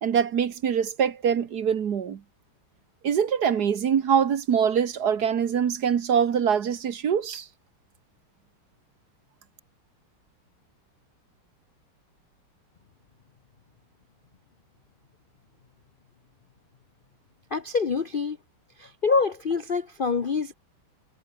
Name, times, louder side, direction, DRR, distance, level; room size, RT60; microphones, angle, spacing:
voice 1, 0.0-2.2 3.0-7.4, right 7 dB, 50° right, 1.6 m, -24 dB
voice 2, 17.5-18.4 18.8-20.5, left 4 dB, 85° left, 0.4 m, -26 dB
omnidirectional pair, 2.4 m